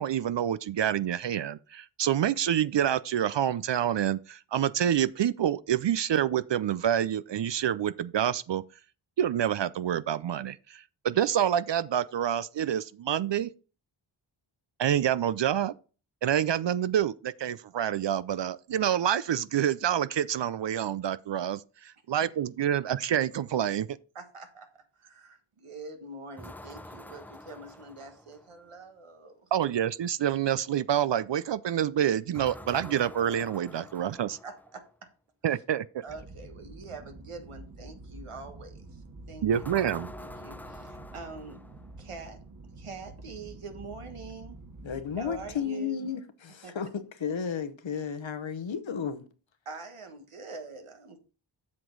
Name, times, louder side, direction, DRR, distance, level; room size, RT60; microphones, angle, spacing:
voice 1, 0.0-8.6 9.2-13.5 14.8-15.7 16.2-24.0 29.5-34.4 35.4-36.0 39.4-40.1, right 10 dB, 60° right, 0.5 m, -27 dB
voice 2, 24.1-29.5 34.4-34.8 36.0-39.5 39.8-39.9 40.2-41.6 42.0-42.4 42.8-44.6 45.2-46.0 46.6-46.8 49.6-51.2, right 3 dB, 85° right, 1.5 m, -44 dB
sound 1, 26.4-28.7 32.3-34.9 39.5-42.1, left 1 dB, 5° left, 0.5 m, -46 dB
sound 2, 36.1-45.6, right 2 dB, 40° right, 1.5 m, -47 dB
voice 3, 44.8-49.3, left 7 dB, 65° left, 1.0 m, -33 dB
7.6 x 6.1 x 3.9 m
cardioid pair, 45°, 50 cm